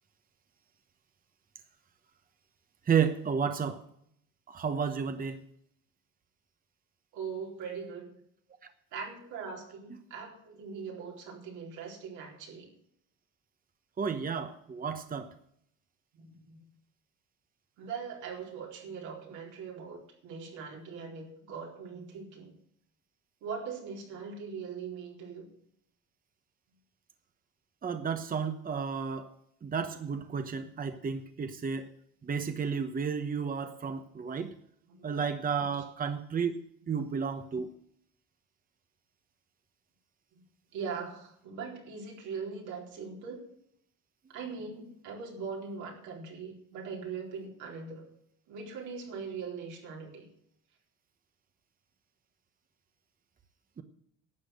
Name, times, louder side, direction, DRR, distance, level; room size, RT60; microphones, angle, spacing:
voice 1, 2.9-3.8 4.5-5.4 14.0-15.3 27.8-29.3 29.6-31.9 32.2-34.5 35.0-37.7 53.8-53.9, right 6 dB, 30° right, 8 dB, 1.1 m, -32 dB
voice 2, 7.1-8.1 8.9-12.7 16.1-16.6 17.8-22.5 23.4-25.5 34.9-35.2 40.7-43.5 44.3-48.1 48.5-50.3, right 5 dB, 85° right, 0 dB, 4.3 m, -41 dB
12.0 x 8.2 x 7.9 m, 0.70 s
cardioid pair, 110°, 29 cm